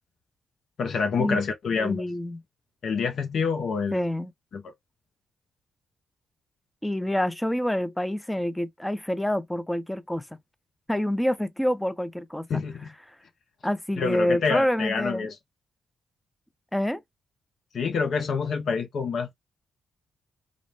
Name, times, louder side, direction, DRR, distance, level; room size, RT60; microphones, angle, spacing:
voice 1, 0.8-2.0 2.8-4.0 4.5-4.7 12.5-12.9 14.0-15.4 17.7-19.3, left 5 dB, 65° left, 0.6 m, -27 dB
voice 2, 1.8-2.4 3.9-4.3 6.8-10.4 10.9-12.5 13.6-15.3 16.7-17.0, equal, 10° left, 0.5 m, -27 dB
2.5 x 2.0 x 3.1 m
supercardioid pair, 50°, 0 cm